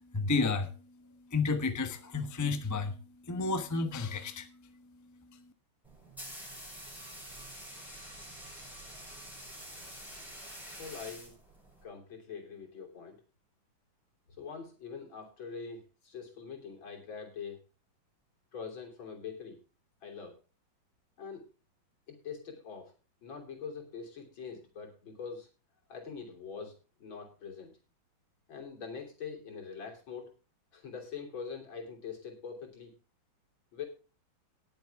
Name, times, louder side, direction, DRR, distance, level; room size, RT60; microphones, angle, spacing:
voice 1, 0.1-0.7 1.3-2.9 3.3-4.5, left 4 dB, 15° left, 0.6 m, -31 dB
sound 1, 5.8-11.8, equal, ahead, 7.9 m, -47 dB
voice 2, 10.8-11.3 11.8-13.2 14.3-17.6 18.5-19.6 20.0-20.4 21.2-21.5 22.1-22.9 23.2-25.5 25.9-27.8 28.5-30.3 30.7-32.9 33.7-33.9, left 6 dB, 70° left, 3.9 m, -43 dB
19.0 x 7.4 x 3.5 m
omnidirectional pair, 2.2 m